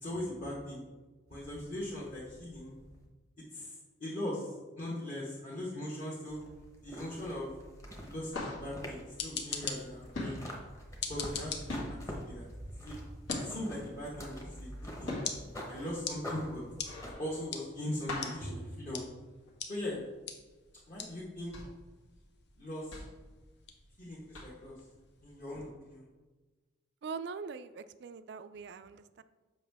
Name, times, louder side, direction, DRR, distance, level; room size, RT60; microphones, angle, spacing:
voice 1, 0.0-0.8 1.3-2.7 3.5-3.7 4.0-6.4 6.8-7.5 8.0-10.4 11.0-12.5 12.7-13.0 13.4-14.7 15.0-15.2 15.7-16.6 17.0-19.0 19.7-20.0 20.9-21.5 22.6-22.9 24.0-24.7 25.2-26.0, left 1 dB, 40° left, -8 dB, 1.2 m, -40 dB
sound 1, 1.3-3.1 6.3-17.1, equal, 15° left, 1.0 m, -46 dB
sound 2, 8.3-9.9 10.1-13.9 14.3-19.6 20.0-20.1 20.4-20.6 21.2-24.0 24.3-24.8 25.5-25.6, left 2 dB, 80° left, 1.8 m, -42 dB
sound 3, 8.9-25.7, left 6 dB, 55° left, 0.7 m, -45 dB
voice 2, 27.0-29.2, right 5 dB, 55° right, 13 dB, 0.3 m, -43 dB
7.2 x 5.3 x 3.5 m, 1.2 s
head